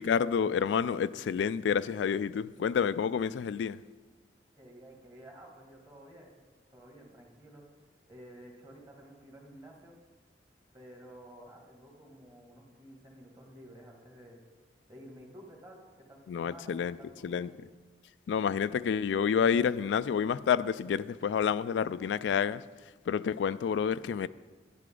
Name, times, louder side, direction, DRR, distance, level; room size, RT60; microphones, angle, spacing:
voice 1, 0.0-3.8 16.3-17.0 17.2-17.7 18.3-22.6 23.1-24.3, left 7 dB, 85° left, 0.3 m, -29 dB
voice 2, 4.5-6.4 6.7-7.6 8.1-10.0 10.7-14.4 14.9-17.5, right 1 dB, 25° right, 2.0 m, -52 dB
11.0 x 11.0 x 3.8 m
head